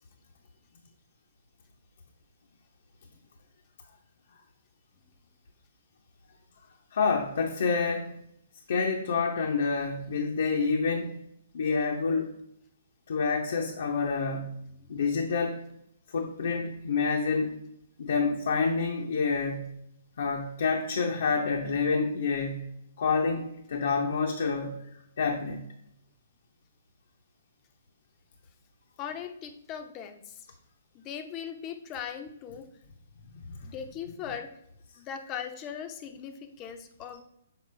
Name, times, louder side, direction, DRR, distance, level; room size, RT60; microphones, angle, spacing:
voice 1, 6.9-8.2 8.7-11.2 11.5-12.3 13.1-14.6 14.9-15.7 16.1-17.6 18.0-19.8 20.2-22.7 23.0-24.8 25.2-25.6 33.3-33.6, left 4 dB, 65° left, 1 dB, 0.7 m, -28 dB
voice 2, 29.0-30.4 30.9-32.7 33.6-34.5 35.0-37.2, left 8 dB, 25° left, 7 dB, 0.6 m, -39 dB
6.8 x 4.3 x 3.2 m, 0.75 s
hypercardioid pair, 145°, 0 cm